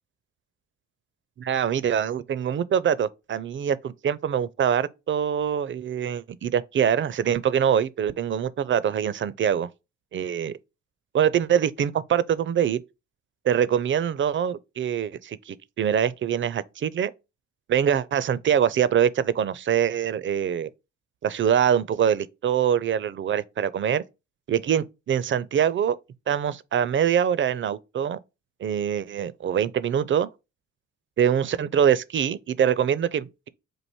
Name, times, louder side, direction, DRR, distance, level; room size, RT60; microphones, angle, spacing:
voice 1, 1.4-9.7 10.1-10.5 11.1-12.8 13.5-17.1 17.7-20.7 21.2-24.0 24.5-26.0 26.3-28.2 28.6-30.3 31.2-33.5, right 8 dB, 35° right, 0.4 m, -24 dB
4.6 x 2.6 x 4.2 m
hypercardioid pair, 45°, 37 cm